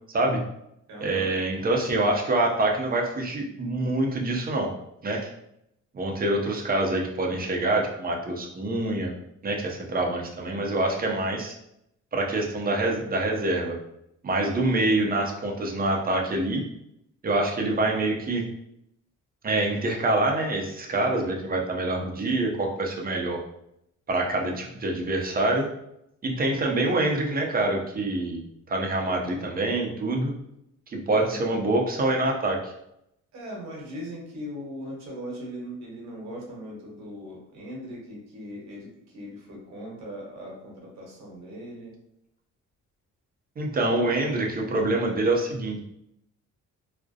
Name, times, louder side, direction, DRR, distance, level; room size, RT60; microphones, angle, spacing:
voice 1, 0.1-0.4 1.0-4.7 5.0-5.3 5.9-9.1 9.4-11.5 12.1-13.8 14.2-16.6 17.2-18.4 19.4-23.4 24.1-25.7 26.2-30.3 30.9-32.7 43.6-45.8, right 2 dB, 30° right, 1 dB, 0.6 m, -26 dB
voice 2, 0.9-1.3 31.1-31.4 33.3-41.9, equal, 65° right, -2 dB, 1.0 m, -39 dB
2.4 x 2.0 x 2.6 m, 0.80 s
cardioid pair, 90°, 30 cm